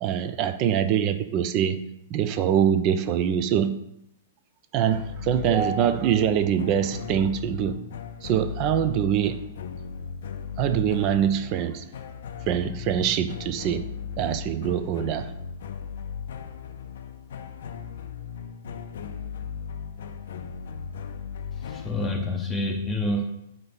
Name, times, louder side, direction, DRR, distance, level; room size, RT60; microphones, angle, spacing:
voice 1, 0.0-3.8 4.7-7.8 8.2-9.4 10.6-11.9 12.5-13.9 14.2-15.3, right 9 dB, 35° right, 0.4 m, -24 dB
sound 1, 4.9-22.3, left 7 dB, 55° left, 0.5 m, -37 dB
voice 2, 21.6-23.2, left 1 dB, 10° left, 0.7 m, -28 dB
6.6 x 2.9 x 5.4 m
figure-of-eight pair, 105°, 0 cm